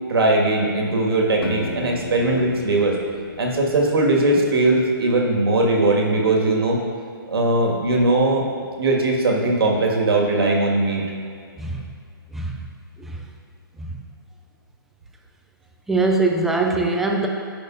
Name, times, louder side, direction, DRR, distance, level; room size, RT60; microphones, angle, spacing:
voice 1, 0.1-3.0 3.4-6.8 7.3-8.5 8.8-11.0, right 2 dB, 80° right, -1 dB, 1.9 m, -19 dB
Acoustic guitar, 1.4-4.4, left 4 dB, 75° left, 0.6 m, -36 dB
voice 2, 15.9-17.3, right 3 dB, ahead, 1 dB, 0.3 m, -22 dB
14.0 x 5.2 x 2.6 m, 2.3 s
hypercardioid pair, 160°, 12 cm